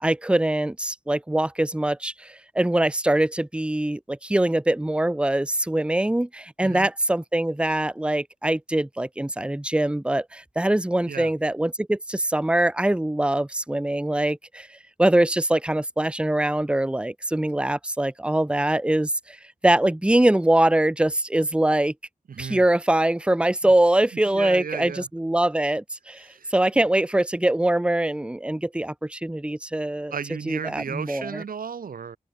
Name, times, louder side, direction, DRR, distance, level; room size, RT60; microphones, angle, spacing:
voice 1, 0.0-14.7 15.0-19.4 19.6-21.9 22.4-30.1 30.5-31.4, right 1 dB, 5° right, 0.7 m, -23 dB
voice 2, 22.3-22.6 23.6-23.7 24.3-25.1 26.2-26.8 30.1-32.2, right 6 dB, 85° right, 0.7 m, -34 dB
open air
wide cardioid pair, 100°, 14 cm